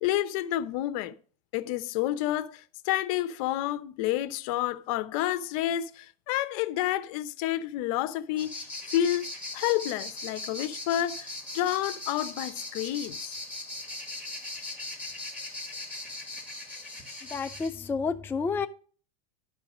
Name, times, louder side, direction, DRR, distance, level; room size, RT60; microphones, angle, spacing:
voice 1, 0.0-1.2 1.5-9.3 9.5-13.3, left 13 dB, 60° left, 0.8 m, -29 dB
sound 1, 8.4-17.7, left 2 dB, 5° right, 2.3 m, -39 dB
voice 2, 17.3-18.7, left 5 dB, 10° left, 0.4 m, -30 dB
11.5 x 4.7 x 6.0 m
supercardioid pair, 135°, 20 cm